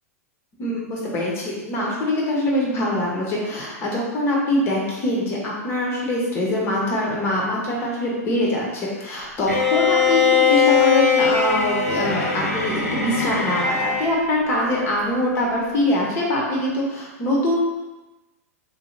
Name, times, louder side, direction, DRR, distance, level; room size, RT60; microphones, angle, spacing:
voice 1, 0.6-17.6, left 1 dB, 30° left, -3 dB, 1.2 m, -23 dB
Bowed string instrument, 9.5-14.1, left 6 dB, 75° left, 0.8 m, -20 dB
6.7 x 2.9 x 2.2 m, 1.1 s
figure-of-eight pair, 95°, 8 cm